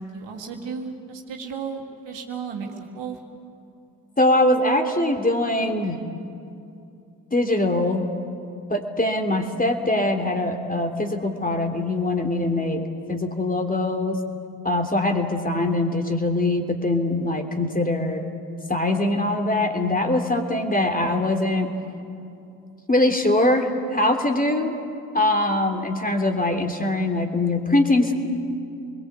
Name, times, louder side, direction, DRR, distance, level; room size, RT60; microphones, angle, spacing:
voice 1, 0.0-2.7 2.9-3.2, right 5 dB, 65° right, 1 dB, 3.1 m, -34 dB
voice 2, 4.2-6.0 7.3-8.1 8.7-14.2 14.6-18.2 18.7-21.7 22.9-24.7 25.1-28.1, left 1 dB, 20° left, 4 dB, 3.3 m, -22 dB
27.5 x 21.5 x 8.3 m, 2.6 s
hypercardioid pair, 50°, 46 cm